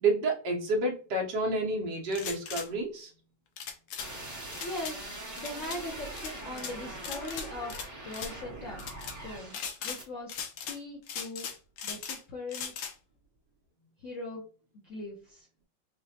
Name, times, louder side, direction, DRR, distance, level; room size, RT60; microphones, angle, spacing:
voice 1, 0.0-3.1, right 2 dB, 65° right, 0 dB, 1.3 m, -29 dB
sound 1, 2.1-2.7 3.6-4.1 4.5-4.9 5.4-5.8 6.2-6.7 7.0-7.9 8.1-8.3 8.8-9.1 9.5-10.0 10.3-10.8 11.1-12.2 12.5-12.9, left 7 dB, 75° left, 1.3 m, -38 dB
sound 2, 4.0-9.7 10.0-10.1, right 1 dB, 15° right, 0.8 m, -42 dB
voice 2, 4.6-8.8 9.2-10.3 10.6-11.5 11.8-12.7 14.0-14.4 14.8-15.5, left 2 dB, 60° left, -2 dB, 0.8 m, -40 dB
4.9 x 2.1 x 2.7 m, 0.37 s
omnidirectional pair, 2.2 m